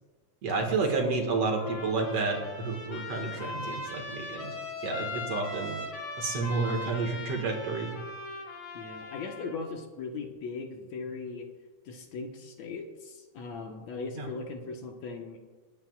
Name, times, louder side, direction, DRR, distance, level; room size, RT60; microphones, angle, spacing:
voice 1, 0.4-4.5 4.8-5.8 6.2-7.9 14.2-14.3, right 3 dB, 55° right, 1 dB, 2.7 m, -30 dB
Trumpet, 1.4-9.6, left 3 dB, 50° left, 3.0 m, -40 dB
voice 2, 8.7-11.5 11.9-15.4, left 4 dB, 65° left, 2 dB, 2.4 m, -39 dB
28.5 x 9.5 x 2.4 m, 1.3 s
omnidirectional pair, 3.5 m